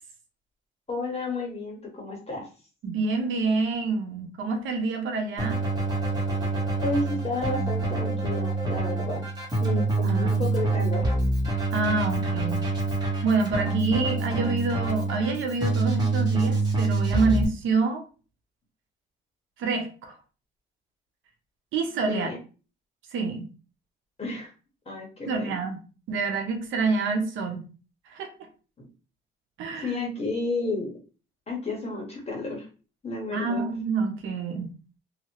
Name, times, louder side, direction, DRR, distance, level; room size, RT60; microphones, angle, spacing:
voice 1, 0.9-2.5 6.8-9.2 9.6-11.1 22.1-22.4 24.2-24.5 24.8-25.5 28.8-28.9 29.8-30.9 31.5-32.7 33.0-33.6, left 2 dB, 30° left, 0 dB, 1.4 m, -31 dB
voice 2, 2.8-5.6 10.0-10.5 11.7-12.7 13.2-18.0 19.6-20.2 21.7-22.3 23.1-23.5 25.3-25.8 26.1-27.7 28.1-28.3 29.6-29.9 33.3-34.7, right 4 dB, 80° right, 4 dB, 0.8 m, -27 dB
Keyboard (musical), 5.4-17.4, right 2 dB, 20° right, 1.4 m, -26 dB
2.8 x 2.8 x 2.9 m, 0.35 s
cardioid pair, 90°, 20 cm